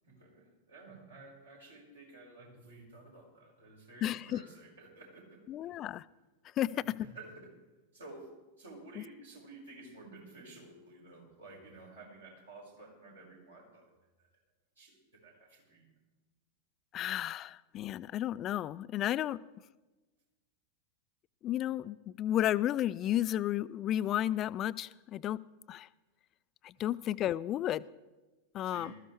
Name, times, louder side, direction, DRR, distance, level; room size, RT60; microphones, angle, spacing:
voice 1, 0.0-5.8 6.6-7.5 7.9-8.3 8.6-13.9 14.2-14.3 14.8-15.9 26.7-26.9 28.6-28.9, right 2 dB, 75° right, -2 dB, 4.9 m, -53 dB
voice 2, 4.0-4.4 5.5-6.0 6.6-7.0 16.9-19.4 21.4-25.4 25.7-25.9 26.6-27.9 28.5-28.9, left 12 dB, 30° left, 18 dB, 0.3 m, -32 dB
20.5 x 13.5 x 3.3 m, 1.2 s
figure-of-eight pair, 90°, 0 cm